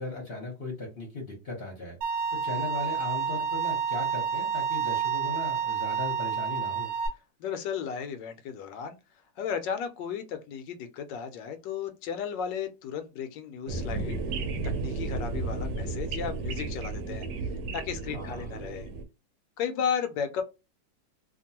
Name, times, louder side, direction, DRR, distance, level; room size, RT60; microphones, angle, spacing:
voice 1, 0.0-2.0 2.3-6.9 18.1-18.5, left 2 dB, 40° left, 0.9 m, -37 dB
Bowed string instrument, 2.0-7.1, right 7 dB, 50° right, 1.1 m, -29 dB
voice 2, 7.4-9.0 9.4-14.2 14.6-17.3 17.7-18.9 19.6-20.4, left 7 dB, 80° left, 1.2 m, -34 dB
sound 1, 13.7-19.0, right 3 dB, 75° right, 1.2 m, -33 dB
2.9 x 2.5 x 2.7 m
omnidirectional pair, 2.0 m